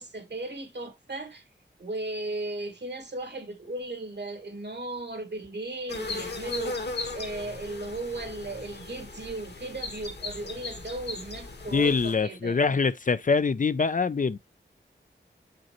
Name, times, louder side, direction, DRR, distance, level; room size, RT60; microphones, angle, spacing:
voice 1, 0.0-1.5 1.8-12.6, right 2 dB, 65° right, 1.7 m, -36 dB
sound 1, 5.9-12.1, left 3 dB, 60° left, 1.4 m, -37 dB
voice 2, 11.7-14.4, left 4 dB, 45° left, 0.4 m, -24 dB
7.1 x 5.1 x 2.9 m
wide cardioid pair, 75°, 19 cm